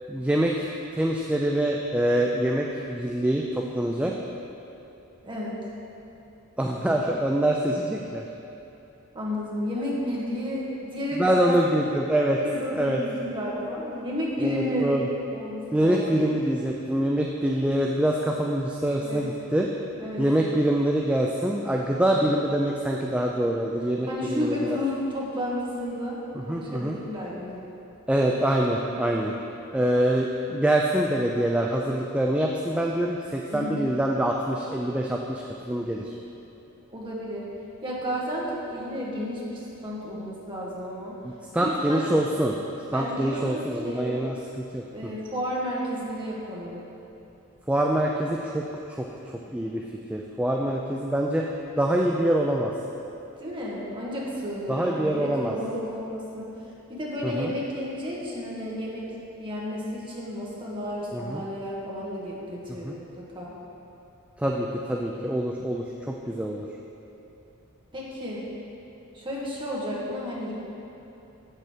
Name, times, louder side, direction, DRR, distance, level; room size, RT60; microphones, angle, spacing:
voice 1, 0.1-0.7 0.9-4.1 6.6-8.3 11.2-12.4 12.7-13.0 14.4-15.1 15.7-19.7 20.2-24.6 26.4-27.0 28.1-29.3 29.7-36.1 41.5-42.6 42.9-44.3 44.7-45.1 47.7-48.6 49.0-49.1 49.5-49.8 50.1-51.5 51.8-52.7 54.7-55.5 57.2-57.5 61.1-61.4 62.8-62.9 64.4-66.7, right 1 dB, 5° right, -1 dB, 0.3 m, -25 dB
voice 2, 5.2-5.6 9.1-11.6 12.4-14.9 15.3-16.2 19.0-19.2 20.0-20.3 24.1-26.2 26.5-27.6 33.5-33.8 36.9-37.5 37.8-41.2 41.5-42.1 42.9-44.2 44.9-46.8 53.4-56.5 56.9-59.1 59.4-63.5 67.9-68.4 69.1-70.5, equal, 20° right, -5 dB, 1.5 m, -32 dB
7.4 x 6.7 x 5.0 m, 2.9 s
head